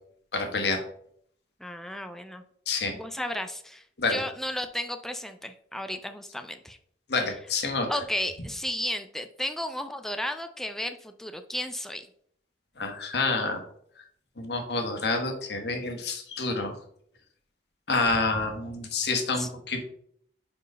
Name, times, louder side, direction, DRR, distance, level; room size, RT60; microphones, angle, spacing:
voice 1, 0.3-0.8 2.7-2.9 4.0-4.2 7.1-7.9 12.8-13.6 14.4-16.8 17.9-19.8, left 3 dB, 70° left, 4 dB, 1.3 m, -28 dB
voice 2, 1.6-2.4 2.9-6.8 7.9-12.1 19.4-19.5, left 1 dB, ahead, 7 dB, 0.4 m, -33 dB
5.0 x 4.5 x 5.3 m, 0.65 s
head